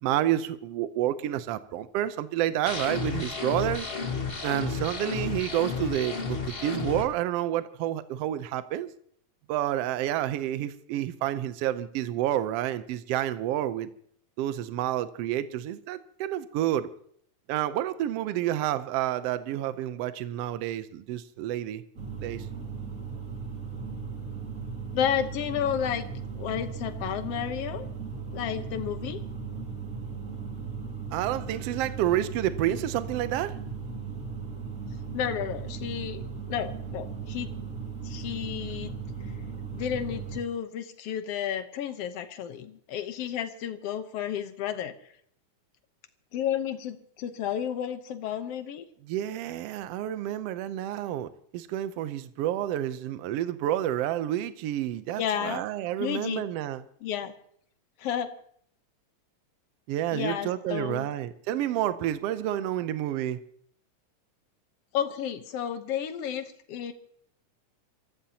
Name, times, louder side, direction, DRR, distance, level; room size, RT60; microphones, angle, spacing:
voice 1, 0.0-3.9 4.4-8.9 9.5-13.9 14.4-16.9 17.5-21.8 22.2-22.5 31.1-33.6 49.1-56.8 59.9-63.4, right 12 dB, 70° right, 1.6 m, -29 dB
sound 1, 2.7-7.0, left 5 dB, 30° left, 1.0 m, -32 dB
sound 2, 22.0-40.4, right 5 dB, 30° right, 2.3 m, -37 dB
voice 2, 24.9-26.0 26.4-27.9 28.3-29.2 35.1-37.5 38.0-38.9 39.7-44.9 46.3-48.9 55.2-55.6 56.0-56.4 57.0-57.3 58.0-58.3 60.1-61.1 64.9-66.9, left 9 dB, 65° left, 1.8 m, -32 dB
27.5 x 14.5 x 2.8 m
omnidirectional pair, 3.3 m